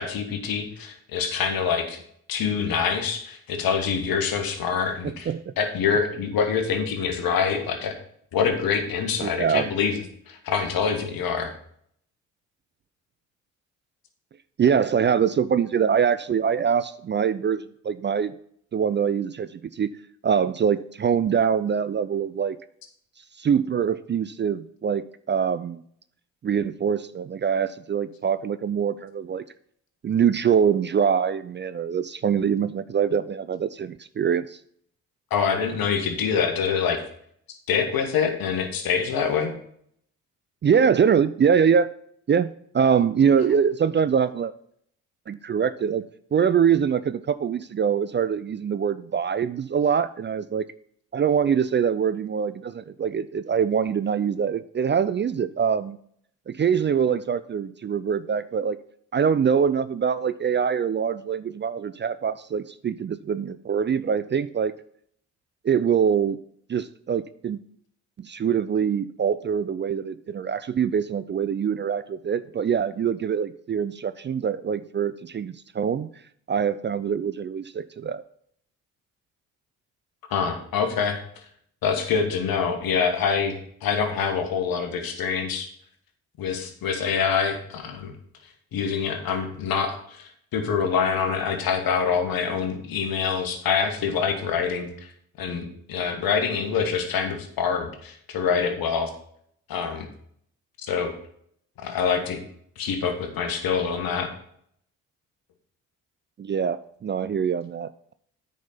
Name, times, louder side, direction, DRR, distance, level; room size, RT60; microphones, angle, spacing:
voice 1, 0.0-2.0 2.3-5.3 5.6-8.0 8.3-11.5 35.3-37.0 37.7-39.5 80.3-81.5 81.8-83.6 83.8-85.7 86.4-88.1 88.7-95.1 95.4-99.1 99.7-100.1 100.8-101.1 101.8-102.4 102.8-104.3, left 6 dB, 60° left, 6 dB, 1.8 m, -25 dB
voice 2, 5.0-5.4 9.2-9.7 14.6-18.3 18.7-20.0 20.2-22.6 23.4-25.8 26.4-29.4 30.0-34.6 40.6-41.9 42.3-44.5 45.3-46.0 46.3-50.7 51.1-56.0 56.5-58.8 59.1-64.7 65.6-66.4 66.7-67.6 68.2-76.1 76.5-78.2 106.4-108.1, right 7 dB, 30° right, 14 dB, 0.5 m, -24 dB
9.1 x 5.3 x 5.7 m, 0.65 s
hypercardioid pair, 45°, 39 cm